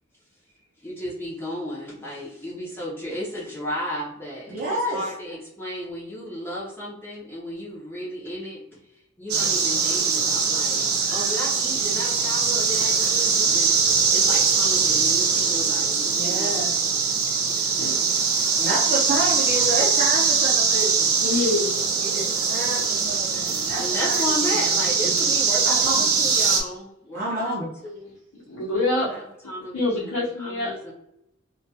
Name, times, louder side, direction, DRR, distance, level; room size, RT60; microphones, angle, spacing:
voice 1, 0.8-4.6 4.9-8.6 9.2-13.8 14.1-16.8 23.8-27.6 27.8-28.0 29.0-30.9, equal, 10° left, -6 dB, 0.5 m, -34 dB
voice 2, 4.5-5.0 16.1-17.1 18.6-21.1 22.0-24.7 25.6-26.2 27.1-27.7, right 1 dB, 40° right, -2 dB, 0.5 m, -29 dB
sound 1, 9.3-26.6, right 5 dB, 90° right, 0.6 m, -22 dB
voice 3, 21.2-21.7 28.3-29.1 29.7-30.7, left 2 dB, 85° left, -8 dB, 0.7 m, -25 dB
2.2 x 2.2 x 2.6 m, 0.81 s
head